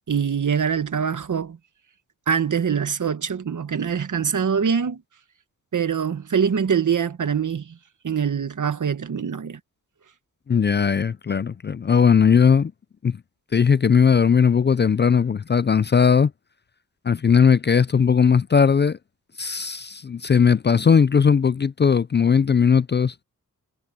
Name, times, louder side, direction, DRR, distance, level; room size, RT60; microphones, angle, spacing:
voice 1, 0.1-1.6 2.3-5.0 5.7-7.8 8.0-9.6, right 7 dB, 60° right, 1.4 m, -24 dB
voice 2, 10.5-12.7 13.0-13.2 13.5-16.3 17.1-19.0 19.4-23.1, left 6 dB, 35° left, 0.4 m, -18 dB
wide cardioid pair, 90°, 34 cm